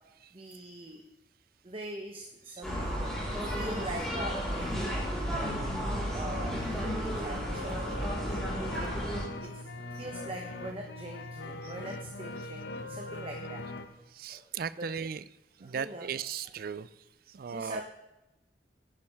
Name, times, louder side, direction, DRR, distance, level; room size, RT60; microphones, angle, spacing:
voice 1, 0.3-1.0 1.6-5.5 6.1-8.7 9.5-9.7 10.0-13.6 14.3-14.4 14.8-14.9 15.6-16.2 17.5-17.8, right 1 dB, 30° right, 2 dB, 0.9 m, -43 dB
sound 1, 2.6-9.2, equal, ahead, 4.0 m, -33 dB
sound 2, 7.5-13.9, left 2 dB, 75° left, 0.9 m, -41 dB
voice 2, 14.1-15.2 15.6-16.9 17.3-17.8, right 7 dB, 55° right, 17 dB, 0.4 m, -36 dB
11.0 x 9.2 x 3.5 m, 0.96 s
head